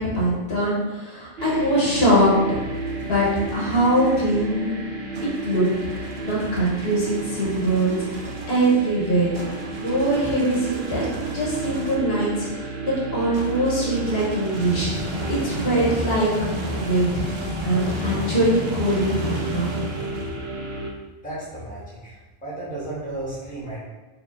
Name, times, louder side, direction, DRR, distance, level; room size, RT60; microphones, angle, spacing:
voice 1, 0.0-2.4 2.7-4.8 5.4-9.3 9.8-16.3 16.7-17.2 17.6-19.8, right 1 dB, 80° left, -5 dB, 1.3 m, -23 dB
sound 1, 1.4-20.9, right 3 dB, 75° right, 0.8 m, -33 dB
sound 2, 2.5-4.2 5.1-12.1 13.3-20.6, equal, 45° right, 0.4 m, -33 dB
voice 2, 21.2-22.1 22.4-23.8, right 2 dB, 10° left, -8 dB, 1.2 m, -33 dB
4.6 x 2.6 x 2.5 m, 1.2 s
omnidirectional pair, 1.1 m